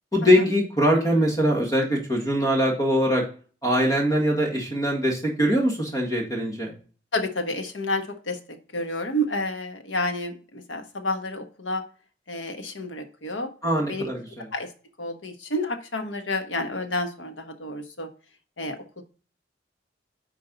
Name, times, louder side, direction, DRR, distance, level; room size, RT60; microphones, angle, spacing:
voice 1, 0.1-3.2 3.6-6.7 13.6-14.5, equal, 20° left, -1 dB, 1.9 m, -22 dB
voice 2, 7.1-8.4 8.7-11.8 12.3-13.5 13.9-14.1 14.5-14.7 15.0-18.1 18.6-19.0, left 1 dB, 90° left, 6 dB, 1.3 m, -30 dB
9.7 x 4.8 x 4.0 m, 0.38 s
head